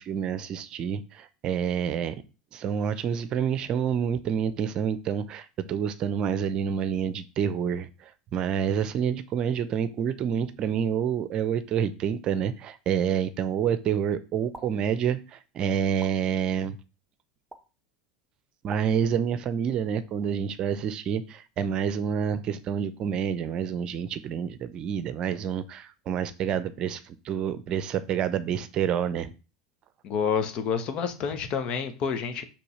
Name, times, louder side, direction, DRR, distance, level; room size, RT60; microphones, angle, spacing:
voice 1, 0.0-2.1 2.5-16.8 18.6-29.3, right 8 dB, 45° right, 14 dB, 0.7 m, -28 dB
sound 1, 14.5-14.7 16.0-16.1 17.5-17.6 18.7-18.8, right 2 dB, 10° right, 1.2 m, -42 dB
voice 2, 30.0-32.4, left 6 dB, 50° left, 8 dB, 1.3 m, -28 dB
5.5 x 3.6 x 5.5 m, 0.31 s
hypercardioid pair, 80°, 2 cm